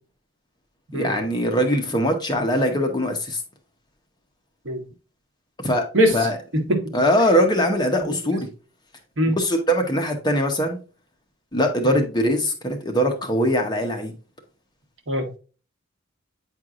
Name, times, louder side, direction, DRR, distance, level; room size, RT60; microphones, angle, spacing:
voice 1, 0.9-3.4 5.6-5.9 6.1-6.4 6.9-8.5 9.4-10.8 11.5-14.1, equal, 20° left, 0.9 m, -21 dB
voice 2, 6.5-6.9 8.3-8.4 9.2-9.4 11.8-12.0 15.1-15.4, equal, 60° right, 1.3 m, -21 dB
8.7 x 4.6 x 2.5 m
head